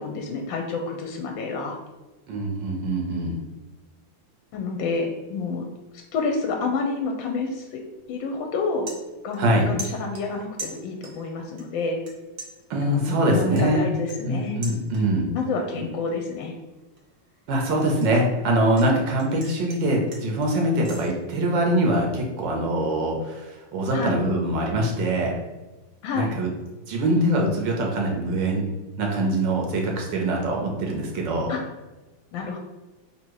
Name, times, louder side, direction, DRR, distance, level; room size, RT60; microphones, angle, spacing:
voice 1, 0.0-1.8 4.5-5.7 6.1-7.8 8.1-8.9 9.2-12.0 12.9-14.6 15.3-16.6 23.9-24.2 26.0-26.3 31.5-31.6 32.3-32.6, left 4 dB, 75° left, 3 dB, 1.2 m, -29 dB
voice 2, 2.3-3.4 9.4-9.7 12.7-13.8 14.2-15.3 17.5-25.3 26.1-26.5 26.9-28.6 29.0-31.5, right 1 dB, 70° right, 0 dB, 1.3 m, -23 dB
sound 1, 7.9-8.1 8.5-9.5 9.8-11.3 11.6-12.1 12.4-15.3 15.7-16.0 16.4-18.9 19.2-21.1, right 3 dB, 50° right, 0.7 m, -41 dB
3.6 x 2.7 x 4.6 m, 1.1 s
omnidirectional pair, 2.2 m